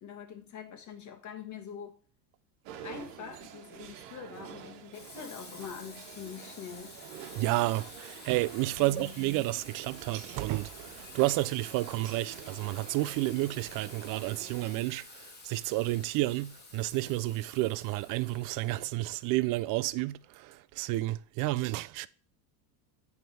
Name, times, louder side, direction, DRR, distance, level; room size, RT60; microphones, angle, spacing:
voice 1, 0.0-2.0 2.8-7.0 8.8-9.2, left 7 dB, 35° left, 1.6 m, -44 dB
sound 1, 2.6-14.8, right 10 dB, 75° right, 1.2 m, -48 dB
Water tap faucet / Sink (filling or washing), 4.9-19.7, left 3 dB, 20° left, 2.1 m, -50 dB
voice 2, 7.4-15.1 15.4-22.1, right 18 dB, 45° right, 0.5 m, -31 dB
9.0 x 3.6 x 5.5 m
supercardioid pair, 105°, 47 cm